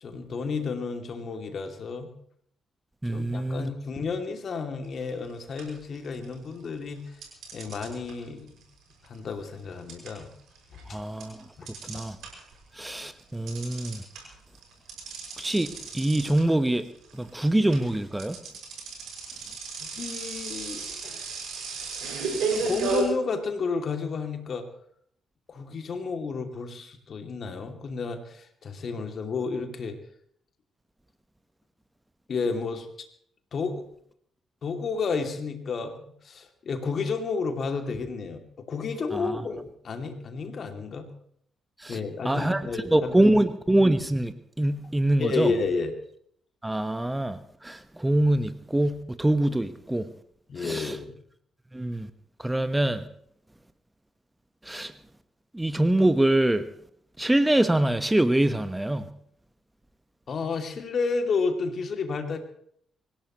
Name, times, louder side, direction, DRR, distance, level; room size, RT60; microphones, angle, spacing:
voice 1, 0.0-2.1 3.1-7.0 7.5-8.6 9.1-10.3 10.9-11.0 11.6-11.7 20.0-21.0 21.8-22.0 22.5-24.7 25.5-30.0 32.3-32.9 33.5-33.8 34.6-41.1 41.9-43.3 45.2-45.9 50.5-51.2 60.3-62.4, left 4 dB, 55° left, 5 dB, 2.7 m, -31 dB
voice 2, 3.0-3.7 10.9-11.4 11.8-12.2 12.8-14.0 15.4-16.9 17.1-18.3 39.1-39.4 41.8-42.0 42.2-42.6 42.9-45.5 46.6-50.1 50.6-51.0 51.7-52.1 52.4-53.0 54.7-54.9 55.5-56.7 57.2-59.1, right 1 dB, 15° right, 11 dB, 1.3 m, -24 dB
sound 1, 5.0-5.3 5.6-6.5 7.2-12.6 12.9-23.0, right 4 dB, 70° right, 6.2 m, -34 dB
25.5 x 16.0 x 3.1 m, 0.66 s
hypercardioid pair, 40°, 0 cm